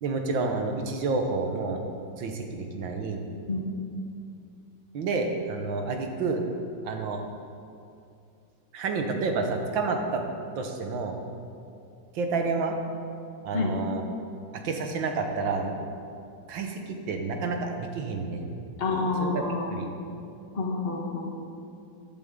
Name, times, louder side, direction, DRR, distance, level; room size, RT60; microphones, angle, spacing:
voice 1, 0.0-1.8 2.2-3.2 4.9-6.4 6.8-7.2 8.7-10.2 10.6-11.2 12.2-12.8 13.4-14.0 14.6-15.7 16.5-18.5 19.2-19.9, right 4 dB, 80° right, 4 dB, 1.9 m, -29 dB
voice 2, 18.8-19.8 20.5-21.3, left 3 dB, 35° left, -2 dB, 1.6 m, -28 dB
14.0 x 11.5 x 3.8 m, 2.5 s
omnidirectional pair, 2.0 m